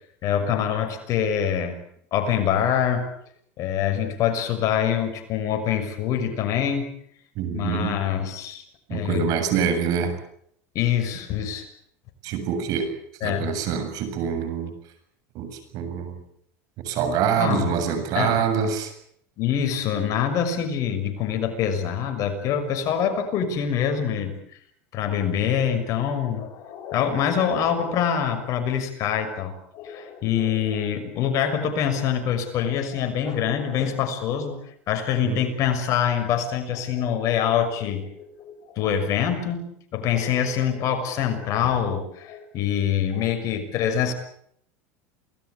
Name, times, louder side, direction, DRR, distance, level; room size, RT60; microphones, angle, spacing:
voice 1, 0.2-1.8 2.1-3.1 3.6-6.9 7.5-8.6 8.9-9.3 10.7-11.7 13.2-13.5 17.4-17.7 18.1-18.4 19.4-24.4 24.9-34.6 34.9-44.1, left 8 dB, 50° left, 7 dB, 6.2 m, -25 dB
voice 2, 7.4-8.0 8.9-10.1 12.2-12.9 13.2-14.7 15.3-16.2 16.8-18.9 35.2-35.4, right 7 dB, 55° right, 9 dB, 7.4 m, -25 dB
28.5 x 19.5 x 8.4 m, 0.67 s
supercardioid pair, 115°, 7 cm